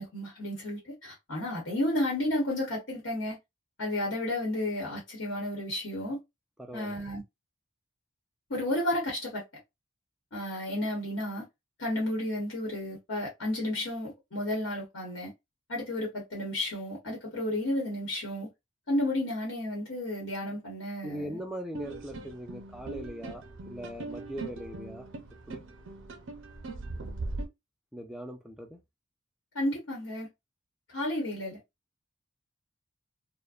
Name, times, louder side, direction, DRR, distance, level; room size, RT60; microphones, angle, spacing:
voice 1, 0.0-3.4 3.8-6.2 6.7-7.2 8.5-9.4 10.3-11.5 11.8-15.3 15.7-18.5 18.9-21.4 29.5-30.3 30.9-31.6, left 1 dB, 65° left, 1.0 m, -32 dB
voice 2, 6.6-7.2 21.0-25.1 25.5-25.6 27.9-28.8, equal, 5° right, 0.3 m, -40 dB
sound 1, 21.7-27.4, right 2 dB, 60° right, 0.5 m, -40 dB
2.5 x 2.1 x 2.3 m
head